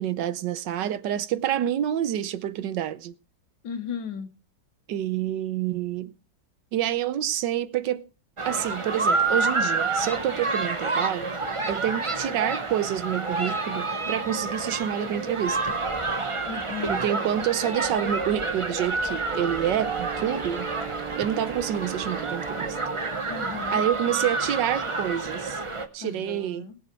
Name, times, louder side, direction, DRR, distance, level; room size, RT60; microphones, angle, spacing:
voice 1, 0.0-3.1 4.9-6.1 6.7-8.1 8.4-11.4 11.7-15.8 16.9-20.7 21.2-22.8 23.7-25.6 25.9-26.7, right 11 dB, 75° right, 1.4 m, -28 dB
voice 2, 3.6-4.3 16.5-17.1 23.3-23.8 26.0-26.8, left 7 dB, 90° left, 2.0 m, -36 dB
sound 1, 8.4-25.9, right 3 dB, 25° right, 0.7 m, -29 dB
Wind instrument woodwind instrument, 19.2-23.3, right 6 dB, 60° right, 0.5 m, -39 dB
19.5 x 8.0 x 4.5 m
omnidirectional pair, 1.9 m